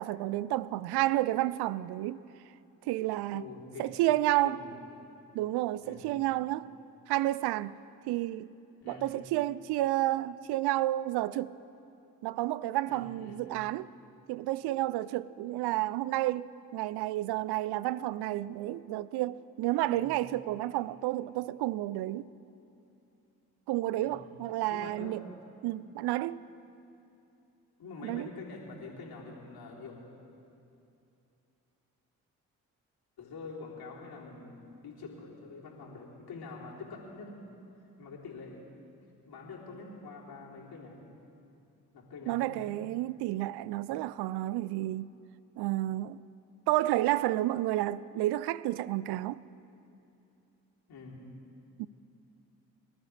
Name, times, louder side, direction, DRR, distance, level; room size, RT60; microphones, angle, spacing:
voice 1, 0.0-2.2 2.9-3.4 3.8-4.6 5.3-6.7 7.1-7.8 8.1-8.5 8.9-11.5 12.2-13.9 14.3-22.3 23.7-25.2 25.6-26.4 28.0-28.3 42.3-45.1 45.6-46.2 46.7-49.4 51.8-51.9, right 15 dB, 75° right, 0.5 m, -31 dB
voice 2, 3.3-3.9 4.4-4.8 5.8-6.2 8.8-9.2 12.9-13.4 15.4-15.6 19.8-20.2 24.0-24.3 24.7-25.3 27.8-30.1 33.2-37.5 38.0-38.6 39.3-41.0 41.9-42.6 50.9-51.2, left 3 dB, 65° left, 3.5 m, -46 dB
25.5 x 12.5 x 3.4 m
hypercardioid pair, 45°, 40 cm